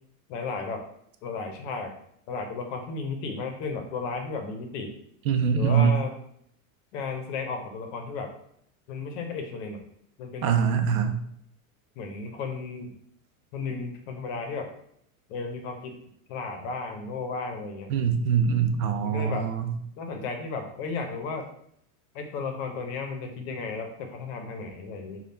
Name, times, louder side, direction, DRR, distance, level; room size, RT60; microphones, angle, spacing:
voice 1, 0.3-0.8 1.2-1.9 2.3-5.0 5.5-6.1 6.9-8.3 8.9-9.8 10.2-10.5 12.0-12.9 13.5-14.7 15.3-15.9 16.3-17.9 19.0-19.5 20.0-21.5 22.1-25.2, left 4 dB, 55° left, 4 dB, 0.8 m, -34 dB
voice 2, 5.3-6.0 10.4-11.2 17.9-19.7, right 7 dB, 70° right, 7 dB, 0.6 m, -23 dB
3.3 x 2.4 x 2.7 m, 0.70 s
supercardioid pair, 120°, 45 cm